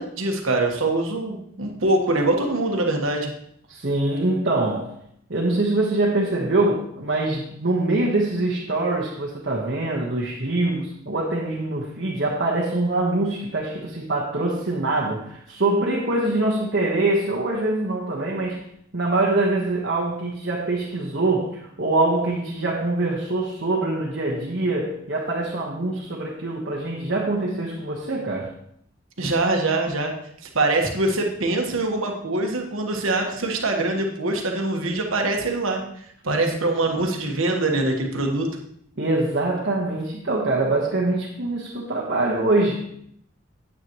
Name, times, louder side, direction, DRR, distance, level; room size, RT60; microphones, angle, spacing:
voice 1, 0.0-3.3 29.2-30.1 30.4-35.8 36.2-38.6, right 2 dB, 90° right, 2 dB, 1.4 m, -23 dB
voice 2, 3.7-4.9 5.3-18.6 18.9-28.5 36.3-36.7 39.0-42.8, right 2 dB, 55° right, -3 dB, 1.3 m, -24 dB
9.2 x 8.6 x 3.1 m, 0.70 s
head